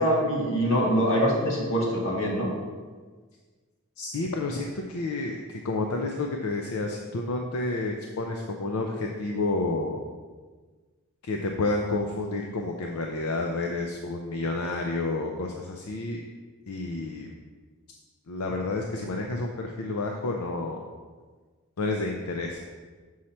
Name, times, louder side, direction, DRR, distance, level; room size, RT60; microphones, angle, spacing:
voice 1, 0.0-2.5, equal, 60° left, -3 dB, 1.7 m, -24 dB
voice 2, 4.0-10.0 11.2-16.2 16.7-17.3 18.3-20.8 21.8-22.6, left 2 dB, 80° left, 2 dB, 0.5 m, -30 dB
6.3 x 5.6 x 4.3 m, 1.4 s
head